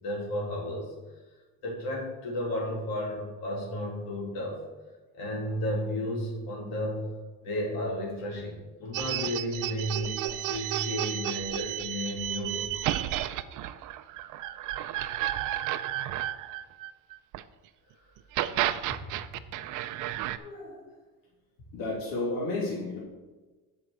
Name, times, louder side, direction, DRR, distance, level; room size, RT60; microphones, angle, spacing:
voice 1, 0.0-0.9 1.6-4.6 5.1-7.1 7.4-12.7, left 1 dB, 85° left, -3 dB, 3.0 m, -33 dB
sound 1, 8.9-17.4 18.2-20.4, right 13 dB, 60° right, 0.5 m, -32 dB
voice 2, 20.4-20.9 21.7-23.0, left 2 dB, 65° left, -5 dB, 2.5 m, -32 dB
8.0 x 5.2 x 6.8 m, 1.2 s
cardioid pair, 165°, 36 cm